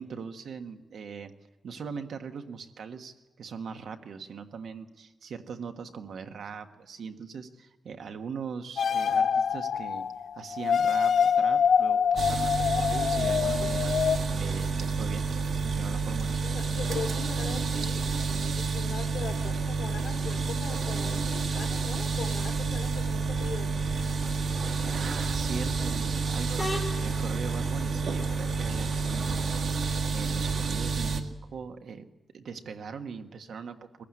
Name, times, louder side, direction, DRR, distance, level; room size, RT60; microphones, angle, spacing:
voice 1, 0.0-1.3 1.6-10.1 10.3-16.4 24.8-32.1 32.3-34.0, right 6 dB, 85° right, 6 dB, 1.5 m, -41 dB
sound 1, 8.8-14.2, left 7 dB, 65° left, 0.6 m, -25 dB
sound 2, 12.2-31.2, right 4 dB, 65° right, 1.7 m, -29 dB
voice 2, 16.4-23.9, left 5 dB, 90° left, 2 dB, 2.6 m, -40 dB
sound 3, 23.8-29.6, left 1 dB, 5° left, 4.1 m, -42 dB
22.5 x 15.0 x 9.6 m, 1.1 s
wide cardioid pair, 150°, 0 cm